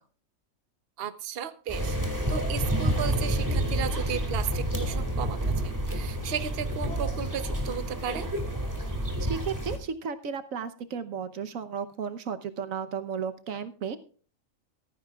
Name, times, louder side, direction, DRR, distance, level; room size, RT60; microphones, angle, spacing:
voice 1, 1.0-2.0 2.3-8.3, right 8 dB, 50° right, 11 dB, 1.0 m, -35 dB
sound 1, 1.7-9.8, right 1 dB, 15° right, 2.1 m, -29 dB
voice 2, 9.2-14.0, right 6 dB, 80° right, 9 dB, 1.3 m, -34 dB
15.0 x 14.5 x 2.4 m, 0.40 s
omnidirectional pair, 1.4 m